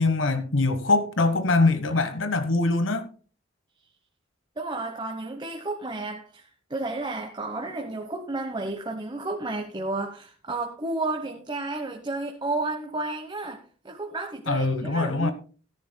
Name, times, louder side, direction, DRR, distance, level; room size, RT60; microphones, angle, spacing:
voice 1, 0.0-3.1 14.5-15.3, left 3 dB, 85° left, 1.2 m, -23 dB
voice 2, 4.6-15.3, right 2 dB, 25° right, 1.1 m, -32 dB
17.5 x 10.5 x 2.3 m
head